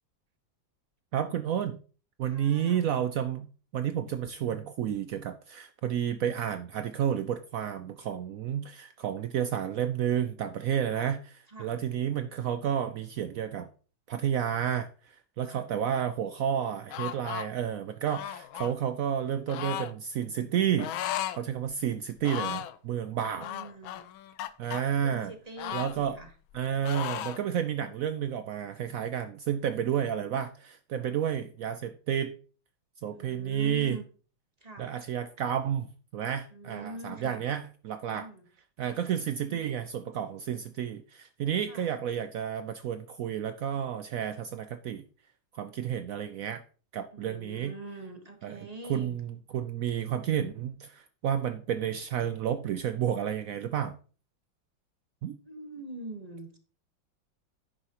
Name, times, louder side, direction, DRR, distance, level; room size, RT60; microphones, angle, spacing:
voice 1, 1.1-1.8 2.2-13.7 14.1-21.0 21.4-23.5 24.6-25.3 25.7-26.2 26.5-32.3 33.0-34.0 34.8-38.3 38.8-45.0 45.5-46.6 46.9-47.7 48.4-48.6 48.9-54.0 55.2-55.4, right 9 dB, 85° right, 10 dB, 0.7 m, -31 dB
voice 2, 2.2-2.8 10.9-11.0 11.5-11.8 15.4-15.7 23.1-24.1 25.0-26.3 33.1-34.0 34.6-34.9 36.5-37.4 38.1-38.5 39.4-39.8 41.6-41.9 47.1-49.2 55.4-56.6, right 2 dB, 25° right, 4 dB, 1.2 m, -44 dB
sound 1, 16.9-17.5 18.1-18.7 19.5-19.9 20.8-21.4 21.7-21.8 22.2-22.8 23.4-24.8 25.6-26.6 26.8-27.4, left 12 dB, 90° left, 1.5 m, -35 dB
10.5 x 9.0 x 2.9 m, 0.38 s
omnidirectional pair, 2.1 m